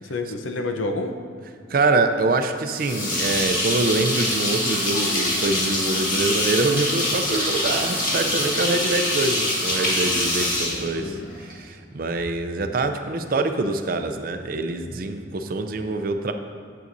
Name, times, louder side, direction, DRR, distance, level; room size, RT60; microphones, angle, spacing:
voice 1, 0.0-1.2 10.4-11.3, left 2 dB, 85° left, 5 dB, 0.7 m, -30 dB
voice 2, 1.7-16.3, right 3 dB, 50° right, 7 dB, 0.5 m, -25 dB
sound 1, 2.7-11.5, left 1 dB, 45° left, 1.7 m, -24 dB
11.0 x 7.7 x 2.6 m, 2.2 s
head